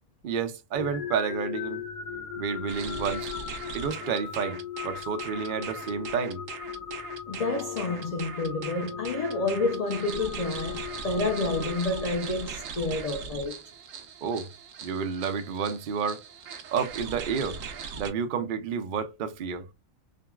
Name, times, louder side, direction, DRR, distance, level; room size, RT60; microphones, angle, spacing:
voice 1, 0.2-1.8 2.4-3.3 3.7-6.4 14.2-14.5 14.8-16.2 16.7-17.6 18.0-19.7, right 6 dB, 55° right, 0.6 m, -30 dB
sound 1, 0.7-12.7, left 8 dB, 50° left, 0.6 m, -38 dB
sound 2, 2.7-18.1, right 6 dB, 75° right, 1.0 m, -40 dB
voice 2, 7.3-13.6, left 3 dB, 80° left, 0.3 m, -29 dB
3.8 x 2.2 x 2.2 m
omnidirectional pair, 1.4 m